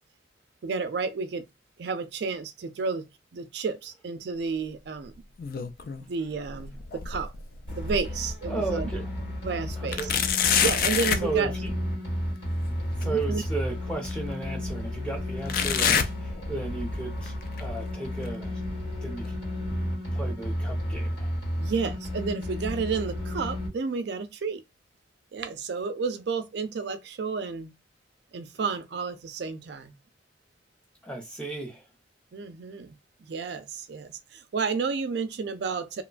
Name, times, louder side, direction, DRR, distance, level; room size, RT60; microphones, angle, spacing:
voice 1, 0.6-1.5 1.8-5.1 5.6-5.7 6.1-7.3 7.8-8.9 9.4-10.1 10.6-11.5 13.0-13.4 21.6-24.6 25.3-27.7 28.3-29.9 32.3-32.9 33.3-36.0, right 4 dB, 65° right, 0.4 m, -31 dB
sound 1, 5.1-6.1 6.4-8.3 8.8-8.9 9.9-11.3 13.0-13.1 14.0-14.1 15.5-16.9 17.2-17.6 18.3-18.4 19.2-19.3, left 7 dB, 50° left, 0.3 m, -27 dB
sound 2, 7.7-23.7, left 1 dB, 75° left, 1.5 m, -32 dB
voice 2, 8.5-9.1 9.8-10.2 11.2-11.7 13.0-18.6 19.0-19.4 20.1-21.3 31.0-31.8, right 3 dB, 5° left, 0.6 m, -34 dB
2.9 x 2.2 x 2.4 m
head